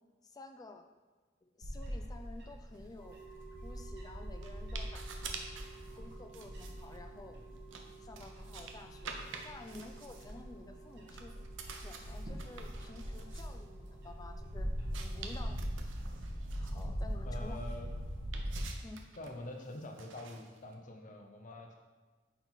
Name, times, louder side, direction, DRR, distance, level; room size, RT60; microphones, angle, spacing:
voice 1, 0.2-0.9 1.4-3.2 3.6-5.1 6.0-7.4 8.0-9.1 9.4-11.3 11.8-15.8 16.6-17.6 18.8-19.0, left 2 dB, 20° left, 6 dB, 0.4 m, -51 dB
Bird / Wind, 1.6-18.6, equal, 65° right, 1.2 m, -42 dB
sound 1, 2.7-20.7, right 5 dB, 85° right, 0.6 m, -51 dB
sound 2, 3.0-15.6, right 7 dB, 10° right, 0.7 m, -57 dB
voice 2, 17.2-18.0 19.2-21.8, left 1 dB, 45° left, 3 dB, 0.7 m, -45 dB
5.5 x 4.2 x 4.4 m, 1.4 s
head